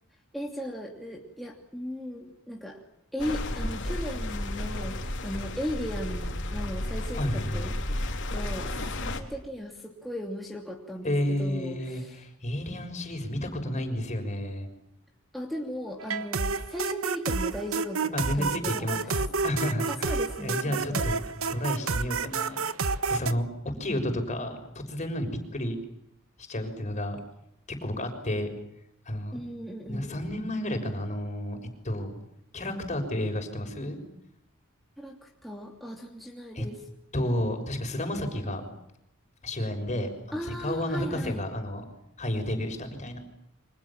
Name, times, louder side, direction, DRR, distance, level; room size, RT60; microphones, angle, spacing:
voice 1, 0.3-2.8 3.1-12.2 15.3-19.1 19.9-21.1 29.3-30.1 35.0-36.8 40.3-41.4, equal, ahead, -1 dB, 2.8 m, -37 dB
sound 1, 3.2-9.2, left 1 dB, 60° left, 3.6 m, -32 dB
voice 2, 7.2-7.6 11.0-14.7 18.1-21.2 21.5-22.6 23.1-25.8 26.5-27.2 27.7-28.5 29.1-29.4 29.9-31.6 31.8-32.1 32.5-34.0 36.5-36.7 37.1-38.6 39.4-41.8 42.2-43.2, left 1 dB, 35° left, 5 dB, 6.3 m, -31 dB
sound 2, 16.0-23.3, right 4 dB, 70° right, 1.3 m, -29 dB
29.5 x 25.5 x 7.4 m, 0.79 s
head